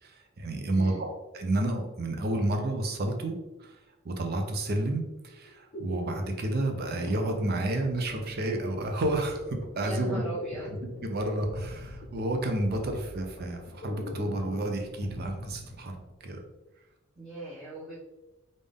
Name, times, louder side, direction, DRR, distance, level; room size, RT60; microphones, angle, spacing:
voice 1, 0.0-3.8 4.0-10.3 11.0-16.0 16.2-16.4, right 1 dB, 45° right, 4 dB, 0.5 m, -30 dB
voice 2, 0.7-1.0 9.8-10.7 17.1-18.0, right 1 dB, ahead, -12 dB, 0.9 m, -39 dB
sound 1, 5.4-16.2, left 1 dB, 40° left, 0.6 m, -43 dB
3.6 x 2.6 x 3.4 m, 1.0 s
head